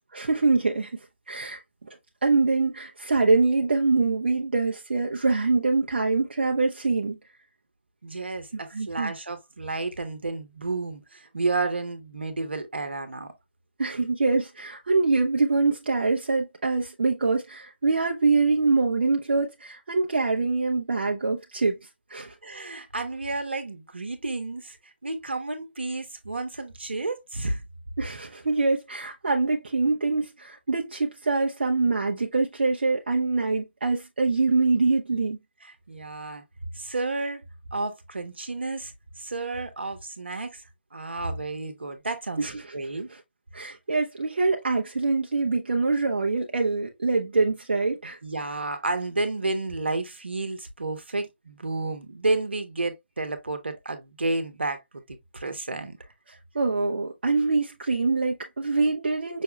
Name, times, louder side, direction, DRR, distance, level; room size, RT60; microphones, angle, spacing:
voice 1, 0.1-0.9 1.3-1.6 2.2-7.2 8.7-9.1 13.8-21.8 22.1-22.3 28.0-35.4 42.4-42.5 43.5-48.2 56.5-59.4, right 3 dB, 70° right, 1.0 m, -24 dB
voice 2, 8.0-13.3 22.4-27.6 35.6-36.4 36.7-37.4 37.7-40.6 40.9-43.1 48.2-56.0, right 3 dB, 85° right, 1.4 m, -31 dB
6.2 x 2.3 x 3.3 m
figure-of-eight pair, 150°, 6 cm